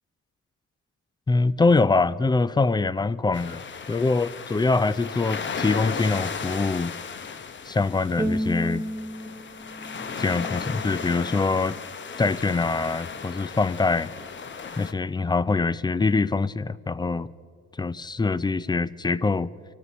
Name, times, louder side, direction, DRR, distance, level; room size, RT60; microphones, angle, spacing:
voice 1, 1.3-3.6 3.9-6.9 7.7-8.8 10.2-11.8 12.2-14.1 14.8-17.3 17.8-19.5, left 3 dB, 15° left, 0.4 m, -24 dB
sound 1, 3.3-14.9, left 6 dB, 40° left, 0.9 m, -35 dB
Bowed string instrument, 8.2-11.4, equal, 10° right, 1.0 m, -32 dB
24.0 x 13.5 x 4.2 m
cardioid pair, 90°, 30 cm